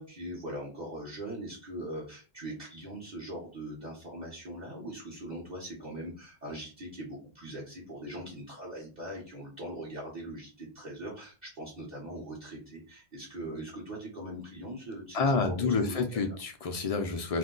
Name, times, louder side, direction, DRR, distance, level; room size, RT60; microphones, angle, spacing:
voice 1, 0.0-16.4, right 1 dB, 45° right, -6 dB, 1.0 m, -41 dB
voice 2, 15.1-17.4, left 4 dB, 55° left, 6 dB, 0.4 m, -28 dB
2.6 x 2.2 x 3.7 m, 0.35 s
omnidirectional pair, 1.1 m